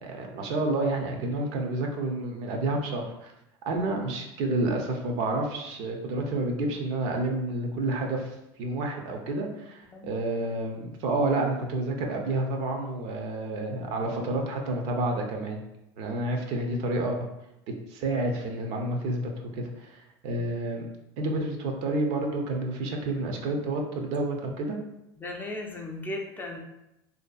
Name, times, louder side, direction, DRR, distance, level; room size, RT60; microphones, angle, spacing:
voice 1, 0.0-3.3 3.7-15.6 16.0-17.2 17.9-19.2 19.5-20.9 21.2-24.8, right 2 dB, 60° right, 2 dB, 0.5 m, -29 dB
voice 2, 25.2-26.6, left 2 dB, 15° left, 0 dB, 0.4 m, -36 dB
2.6 x 2.3 x 2.3 m, 0.87 s
hypercardioid pair, 95°, 13 cm